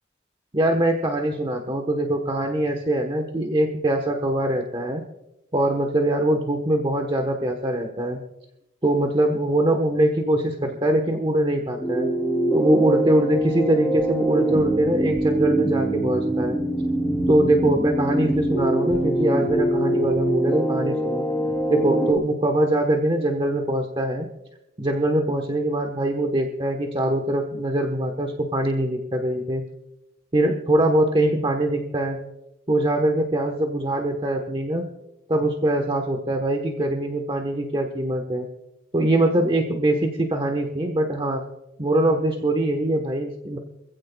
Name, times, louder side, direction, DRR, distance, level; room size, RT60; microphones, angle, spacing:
voice 1, 0.5-5.0 5.5-8.2 8.8-12.1 12.5-16.6 17.3-21.3 21.7-24.3 24.8-29.6 30.3-32.2 32.7-34.9 35.3-38.5 38.9-41.4 41.8-43.6, right 1 dB, 25° right, 3 dB, 1.2 m, -23 dB
sound 1, 11.8-22.1, right 1 dB, 10° left, 3.1 m, -24 dB
25.5 x 16.0 x 2.3 m, 0.92 s
head